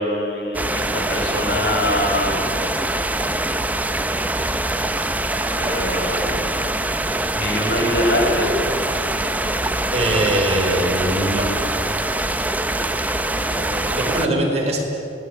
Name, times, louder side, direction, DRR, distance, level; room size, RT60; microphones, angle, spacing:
voice 1, 0.0-2.5 5.5-6.5 7.3-8.5 13.3-14.4, left 1 dB, 75° left, -1 dB, 7.5 m, -24 dB
sound 1, 0.5-14.3, right 1 dB, 10° right, 0.9 m, -23 dB
voice 2, 9.9-11.5 13.9-14.8, right 1 dB, 35° right, 0 dB, 5.0 m, -21 dB
27.0 x 19.5 x 9.3 m, 2.9 s
head